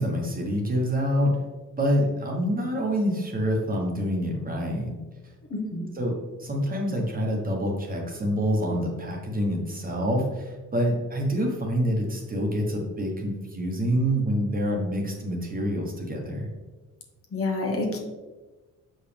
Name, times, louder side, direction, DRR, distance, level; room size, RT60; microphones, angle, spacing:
voice 1, 0.0-1.3 1.8-4.9 5.2-5.3 5.9-6.1 6.4-16.5, equal, 25° right, 0 dB, 1.2 m, -26 dB
voice 2, 5.5-5.9 17.3-18.0, left 2 dB, 45° left, 0 dB, 1.2 m, -28 dB
6.5 x 5.1 x 3.4 m, 1.2 s
cardioid pair, 120°, 32 cm